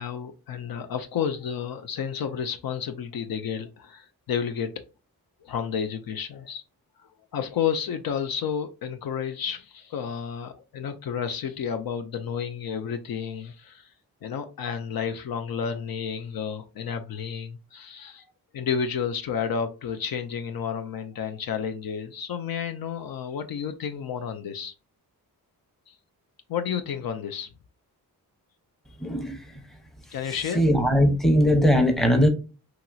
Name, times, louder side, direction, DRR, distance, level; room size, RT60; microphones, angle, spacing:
voice 1, 0.0-4.8 5.4-6.6 7.0-13.9 14.2-18.3 18.5-24.7 25.9-26.0 26.5-27.5 30.1-30.6, left 7 dB, 65° left, 0.5 m, -31 dB
voice 2, 29.0-29.4 30.5-32.3, equal, ahead, 0.7 m, -20 dB
2.9 x 2.8 x 2.3 m
cardioid pair, 65°, 38 cm